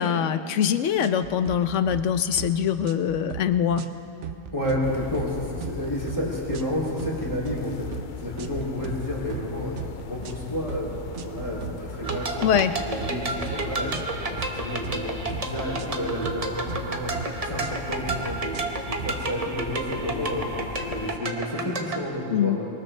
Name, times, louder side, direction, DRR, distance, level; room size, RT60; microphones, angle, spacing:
voice 1, 0.0-3.8 12.4-12.7 22.3-22.6, left 8 dB, 75° left, 11 dB, 1.0 m, -23 dB
sound 1, 1.0-1.6 1.9-2.1 2.4-2.6 2.8-3.5 3.8-4.0 4.2-4.9 5.1-5.3 5.6-6.2 6.5-6.7 7.0-7.6 7.9-8.1 8.4-9.0 9.3-9.5 9.8-10.4 10.7-10.9 11.1-11.8 12.1-13.1 13.5-13.6 13.9-14.5 14.8-15.0 15.3-16.4 16.7-17.3 17.6-17.8 18.1-18.7 19.0-19.2, right 8 dB, 70° right, 1.1 m, -37 dB
voice 2, 4.5-7.9 8.2-9.8 10.0-10.9 11.2-17.2 17.4-18.6 18.9-20.4 20.9-22.7, equal, 25° left, -4 dB, 2.9 m, -31 dB
sound 2, 4.8-21.2, left 6 dB, 50° left, 0.6 m, -39 dB
sound 3, 12.0-22.0, right 2 dB, 30° right, 1.1 m, -31 dB
22.5 x 19.5 x 3.3 m, 2.5 s
omnidirectional pair, 1.3 m